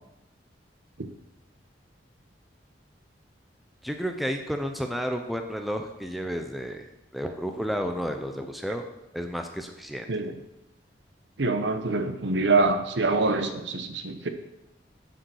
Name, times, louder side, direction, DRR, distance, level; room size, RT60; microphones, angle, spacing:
voice 1, 3.8-6.9 7.1-8.8 9.1-10.1, equal, ahead, 4 dB, 0.6 m, -31 dB
voice 2, 11.4-14.3, right 3 dB, 75° right, 7 dB, 0.9 m, -25 dB
9.0 x 5.1 x 6.3 m, 0.90 s
head